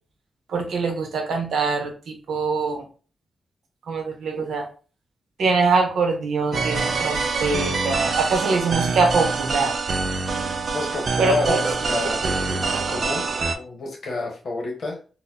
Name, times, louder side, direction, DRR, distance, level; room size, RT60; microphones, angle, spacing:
voice 1, 0.5-2.8 3.9-4.7 5.4-9.8 11.2-11.6, right 4 dB, 80° right, 3 dB, 0.8 m, -23 dB
sound 1, 6.5-13.5, right 4 dB, 45° right, 0.4 m, -25 dB
voice 2, 10.7-12.2 12.9-13.3 13.5-15.0, left 2 dB, 50° left, 0 dB, 1.0 m, -28 dB
4.0 x 2.2 x 2.7 m, 0.38 s
wide cardioid pair, 170°, 0 cm